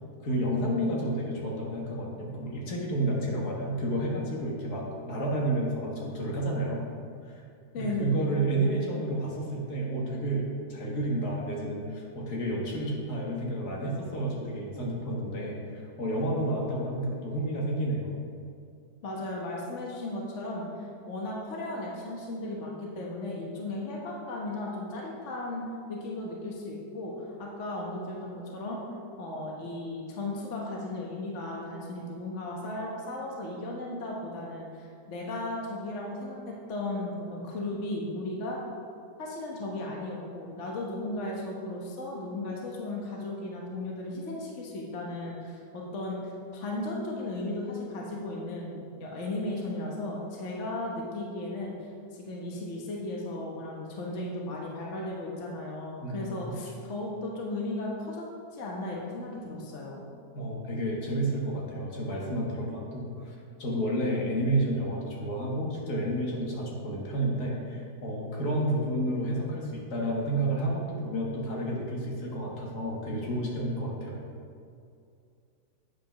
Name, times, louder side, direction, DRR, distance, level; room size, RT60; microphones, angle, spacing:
voice 1, 0.2-6.9 7.3-7.4 7.8-18.1 56.0-56.6 60.3-74.2, right 1 dB, 70° left, -2 dB, 1.9 m, -30 dB
voice 2, 7.7-8.4 19.0-28.8 29.2-38.6 39.2-51.7 52.1-58.3 58.5-60.0, left 2 dB, 50° left, -2 dB, 1.3 m, -35 dB
8.4 x 5.3 x 5.6 m, 2.4 s
omnidirectional pair, 1.8 m